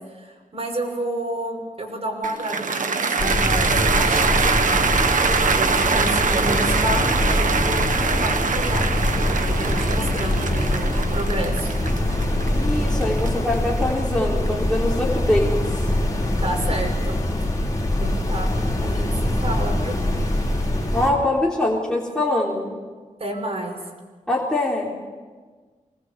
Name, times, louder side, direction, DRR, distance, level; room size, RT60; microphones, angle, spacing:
voice 1, 0.1-4.9 5.6-8.9 9.4-11.7 16.4-17.6 18.0-18.5 18.8-20.0 23.2-23.8, right 1 dB, 45° right, 2 dB, 6.0 m, -30 dB
Cheering / Applause, 2.2-14.5, right 5 dB, 75° right, 1.1 m, -23 dB
sound 1, 3.2-21.1, left 1 dB, 25° left, 4.9 m, -23 dB
voice 2, 12.5-15.5 20.9-22.8 24.3-25.0, left 1 dB, 5° left, -4 dB, 3.7 m, -23 dB
25.0 x 20.5 x 8.1 m, 1.4 s
wide cardioid pair, 105°, 14 cm